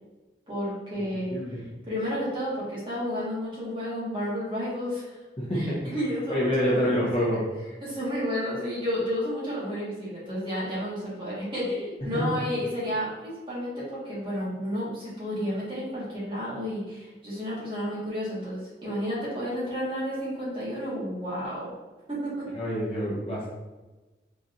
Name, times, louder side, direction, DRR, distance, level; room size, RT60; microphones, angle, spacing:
voice 1, 0.5-1.3 1.9-5.0 5.5-7.4 7.8-21.7 22.1-22.4, equal, 30° right, -8 dB, 1.4 m, -31 dB
voice 2, 1.0-1.6 5.4-5.8 6.3-7.4 12.1-12.2 22.5-23.5, equal, 30° left, -6 dB, 0.9 m, -27 dB
4.1 x 3.2 x 2.5 m, 1.2 s
head